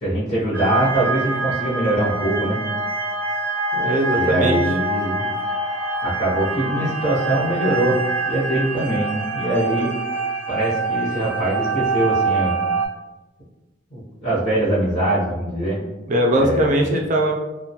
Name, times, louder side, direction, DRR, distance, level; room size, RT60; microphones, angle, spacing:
voice 1, 0.0-2.6 4.1-5.2 6.0-8.0 8.3-9.9 10.5-12.7 13.9-15.8 16.4-16.7, right 1 dB, 40° left, -10 dB, 0.8 m, -22 dB
sound 1, 0.5-12.9, right 3 dB, 10° left, 0.6 m, -25 dB
voice 2, 3.7-4.6 16.1-17.3, right 1 dB, 40° right, 0 dB, 0.4 m, -20 dB
2.6 x 2.2 x 2.7 m, 1.1 s
head